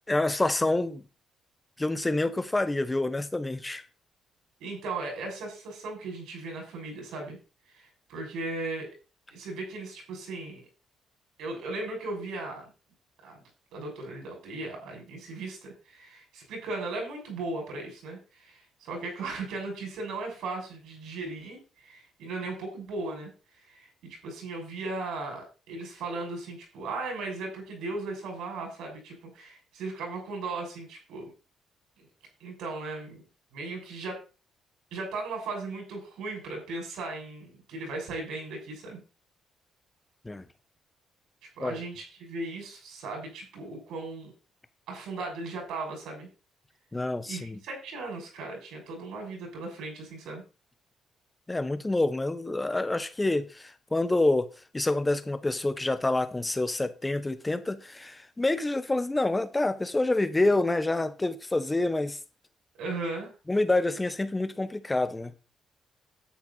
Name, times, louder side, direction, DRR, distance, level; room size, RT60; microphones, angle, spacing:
voice 1, 0.1-1.0 1.8-3.8 40.2-40.4 41.6-41.7 46.9-47.6 51.5-54.5 54.7-62.2 63.5-65.3, left 2 dB, 15° left, 1.2 m, -27 dB
voice 2, 4.6-7.4 7.7-8.9 9.3-10.6 11.4-12.6 13.2-13.4 13.7-23.3 23.7-31.3 32.0-32.1 32.4-33.2 33.5-34.2 34.9-39.0 41.4-44.3 44.9-46.3 47.2-50.4 62.8-63.3, right 3 dB, 85° right, 6.2 m, -37 dB
10.5 x 8.2 x 4.1 m
cardioid pair, 90°, 0 cm